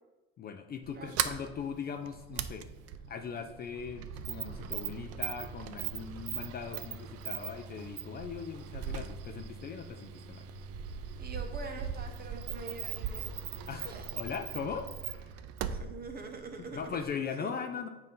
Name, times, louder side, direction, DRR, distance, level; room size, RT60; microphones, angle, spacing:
voice 1, 0.4-2.7 3.1-10.5 13.7-15.3 16.6-17.9, left 6 dB, 35° left, 6 dB, 0.4 m, -40 dB
Sliding door, 0.8-17.2, right 8 dB, 55° right, 0.4 m, -39 dB
voice 2, 11.2-13.5 13.8-14.1 15.6-17.0 17.3-17.5, right 4 dB, 30° right, 5 dB, 0.9 m, -44 dB
7.3 x 2.7 x 5.4 m, 1.1 s
cardioid pair, 115°, 30 cm